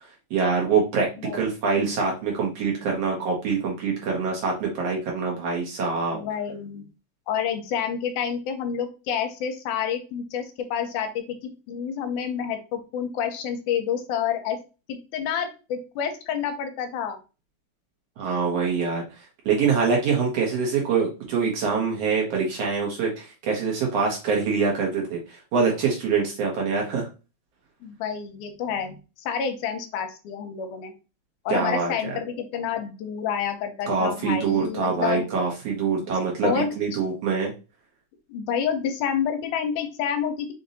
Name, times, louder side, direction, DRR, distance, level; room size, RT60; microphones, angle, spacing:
voice 1, 0.3-1.1 1.3-6.2 18.2-19.0 19.5-27.1 31.5-32.2 33.9-37.5, right 5 dB, 65° right, -1 dB, 1.8 m, -24 dB
voice 2, 6.1-6.9 7.3-14.6 14.9-17.2 27.8-30.9 31.5-35.3 36.0-36.1 36.4-36.7 38.3-40.5, left 8 dB, 80° left, 7 dB, 2.1 m, -29 dB
5.2 x 2.6 x 3.9 m, 0.32 s
omnidirectional pair, 3.7 m